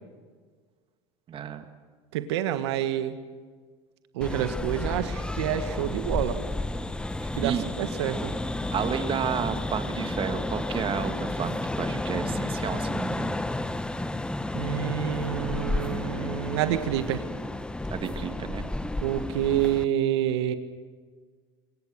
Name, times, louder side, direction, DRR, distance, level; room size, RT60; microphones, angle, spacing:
voice 1, 1.3-1.7 7.4-7.7 8.7-13.3 17.9-18.6, right 8 dB, 40° right, 8 dB, 2.2 m, -31 dB
voice 2, 2.1-3.1 4.1-6.4 7.4-8.3 14.5-17.2 19.0-20.5, right 11 dB, 75° right, 10 dB, 1.6 m, -28 dB
sound 1, 4.2-19.8, left 1 dB, 5° left, 0.9 m, -31 dB
25.5 x 22.5 x 6.5 m, 1.5 s
hypercardioid pair, 85°, 14 cm